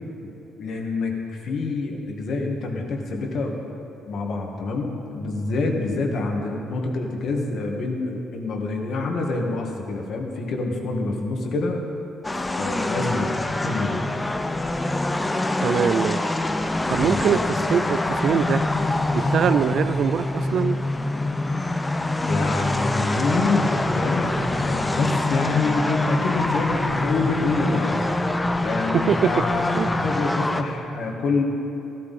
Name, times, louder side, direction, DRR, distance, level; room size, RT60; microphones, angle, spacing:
voice 1, 0.6-3.6 4.1-11.8 12.6-13.3 13.6-14.1 17.0-17.2 22.3-28.0 28.6-31.4, left 3 dB, 55° left, 1 dB, 1.8 m, -26 dB
sound 1, 12.2-30.6, left 2 dB, 10° left, 0.5 m, -25 dB
voice 2, 15.6-16.3 16.9-18.6 19.1-20.8 28.9-29.3 29.7-29.9, right 8 dB, 50° right, 14 dB, 0.3 m, -23 dB
14.5 x 13.0 x 4.2 m, 2.9 s
cardioid pair, 140°, 0 cm